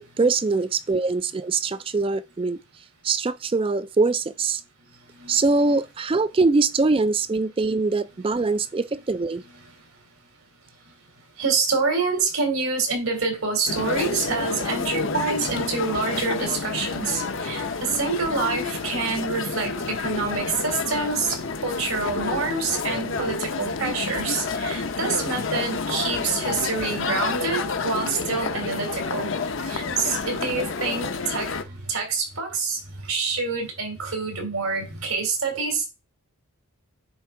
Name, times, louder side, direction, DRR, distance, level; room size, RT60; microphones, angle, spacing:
voice 1, 0.0-2.6 3.0-4.6 5.3-9.4 31.0-31.1, right 3 dB, 25° right, 0.3 m, -23 dB
voice 2, 11.4-21.4 21.6-29.3 29.6-32.8 33.1-35.9, right 4 dB, 80° right, 2.9 m, -27 dB
sound 1, 13.7-31.6, left 4 dB, 60° left, 0.7 m, -29 dB
9.4 x 3.5 x 4.6 m
head